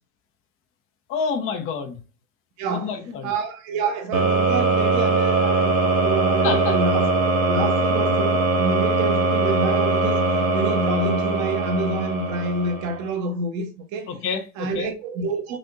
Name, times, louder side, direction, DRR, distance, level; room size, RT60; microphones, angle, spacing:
voice 1, 1.1-2.0 2.7-3.3 6.4-6.8 14.1-14.9, left 5 dB, 30° left, 0.9 m, -28 dB
voice 2, 2.6-3.0 3.2-10.2 10.5-14.1 14.6-15.6, right 3 dB, 40° right, 1.1 m, -27 dB
sound 1, 4.1-13.0, right 3 dB, 85° right, 1.1 m, -21 dB
5.1 x 2.7 x 2.4 m
hypercardioid pair, 95°, 42 cm